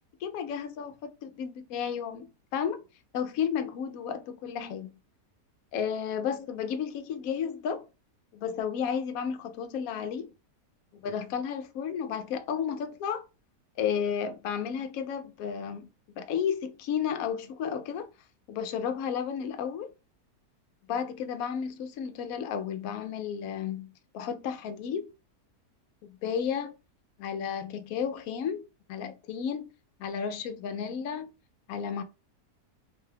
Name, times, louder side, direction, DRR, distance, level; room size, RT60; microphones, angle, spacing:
voice 1, 0.2-0.9 1.2-2.3 2.5-2.8 3.1-4.9 5.7-7.8 8.3-10.3 11.0-13.3 13.8-15.9 16.2-18.1 18.5-19.9 20.9-25.1 26.2-26.7 27.2-28.6 28.9-29.7 30.0-31.3 31.7-32.0, left 7 dB, 70° left, 0.9 m, -32 dB
4.3 x 2.3 x 3.2 m
omnidirectional pair, 1.8 m